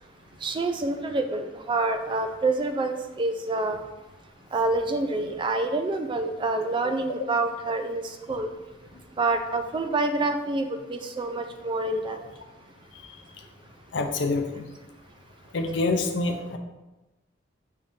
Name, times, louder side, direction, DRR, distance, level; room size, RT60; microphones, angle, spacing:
voice 1, 0.4-3.8 4.5-8.5 9.1-12.2, right 2 dB, 25° right, 6 dB, 0.3 m, -27 dB
voice 2, 13.9-14.6 15.5-16.6, left 3 dB, 70° left, 5 dB, 0.5 m, -26 dB
5.3 x 2.6 x 3.5 m, 1.1 s
head